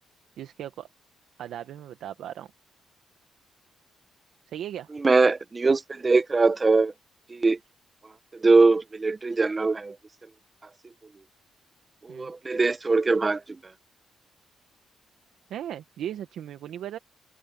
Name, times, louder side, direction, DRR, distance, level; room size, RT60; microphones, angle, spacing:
voice 1, 0.4-0.9 1.4-2.5 4.5-4.9 12.1-12.3 15.5-17.0, right 11 dB, 80° right, 1.2 m, -37 dB
voice 2, 4.9-6.9 7.3-7.6 8.4-10.0 12.0-13.4, right 3 dB, 25° right, 0.9 m, -21 dB
cardioid pair, 105°, 0 cm